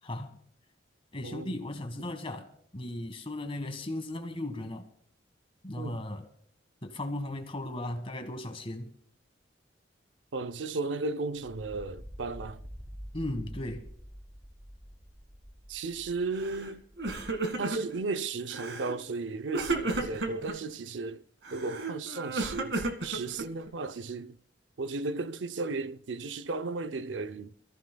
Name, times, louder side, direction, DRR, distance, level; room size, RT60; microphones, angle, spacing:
voice 1, 0.0-0.4 1.1-2.5 2.7-4.9 5.6-6.2 6.8-8.9 13.1-13.8, left 1 dB, 30° left, 1.6 m, -36 dB
voice 2, 1.2-1.6 5.8-6.0 10.3-12.6 15.7-16.8 17.6-21.2 21.5-24.4 24.8-27.5, right 3 dB, 90° right, 0.6 m, -35 dB
sound 1, 11.6-17.4, equal, 5° left, 1.7 m, -47 dB
Crying sobbing, 16.4-16.7 17.0-18.0 18.5-19.0 19.5-20.6 21.4-23.7, right 2 dB, 75° right, 1.8 m, -33 dB
26.5 x 14.5 x 2.3 m
head